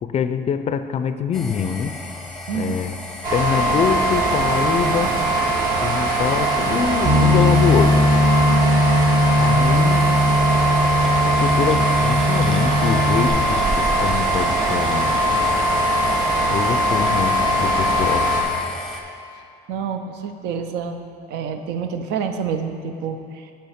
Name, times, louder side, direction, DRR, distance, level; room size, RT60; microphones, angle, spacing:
voice 1, 0.0-1.9 2.5-3.0 3.3-5.2 5.8-8.0 9.3-10.1 11.2-15.4 16.5-18.3, left 7 dB, 40° left, 10 dB, 0.3 m, -24 dB
sound 1, 1.3-19.0, left 2 dB, 5° left, 0.6 m, -35 dB
voice 2, 2.5-2.8 19.7-21.0 21.3-23.5, right 6 dB, 85° right, 7 dB, 0.5 m, -28 dB
sound 2, 3.2-18.4, right 1 dB, 55° right, 1.4 m, -21 dB
Bass guitar, 7.0-13.3, left 1 dB, 40° right, 1.1 m, -19 dB
8.4 x 3.4 x 5.7 m, 2.4 s
cardioid pair, 110°, 17 cm